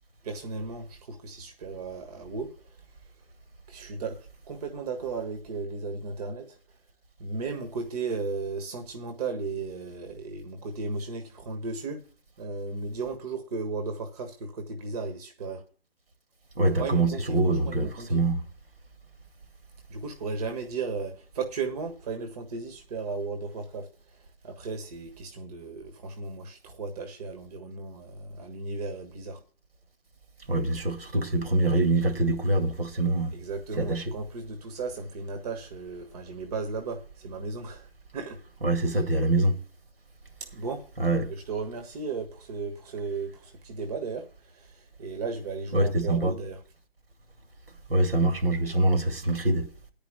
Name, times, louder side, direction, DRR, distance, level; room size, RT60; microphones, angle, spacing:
voice 1, 0.2-2.5 3.7-4.2 4.5-6.6 7.2-12.0 12.4-15.6 16.8-18.2 19.9-23.9 24.4-29.4 33.3-37.9 38.1-38.4 40.5-40.8 41.5-46.6, right 4 dB, 40° right, 1.5 m, -35 dB
voice 2, 16.6-18.4 30.5-33.3 33.8-34.0 38.6-39.6 41.0-41.3 45.7-46.3 47.9-49.7, right 2 dB, 75° right, 2.3 m, -24 dB
10.5 x 5.2 x 8.0 m
figure-of-eight pair, 135°, 30 cm